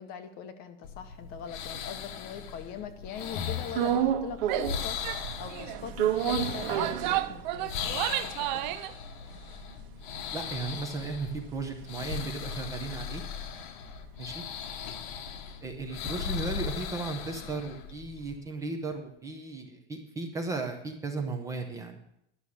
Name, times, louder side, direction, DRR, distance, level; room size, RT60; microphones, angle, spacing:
voice 1, 0.0-8.8, left 8 dB, 30° left, 9 dB, 0.8 m, -42 dB
sound 1, 0.8-18.4, left 7 dB, 55° left, 1.1 m, -38 dB
sound 2, 3.7-4.9 5.2-7.8 8.2-8.3 8.5-13.0 13.3-17.4, right 10 dB, 65° right, 1.3 m, -33 dB
Female speech woman speaking / Yell, 4.4-4.7 5.0-5.2 5.5-5.8 6.5-8.9, right 16 dB, 50° right, 0.5 m, -32 dB
voice 2, 10.3-13.2 14.2-14.4 15.6-22.0, right 3 dB, 10° right, 4 dB, 0.7 m, -35 dB
11.0 x 6.3 x 8.4 m, 0.77 s
supercardioid pair, 180°, 30 cm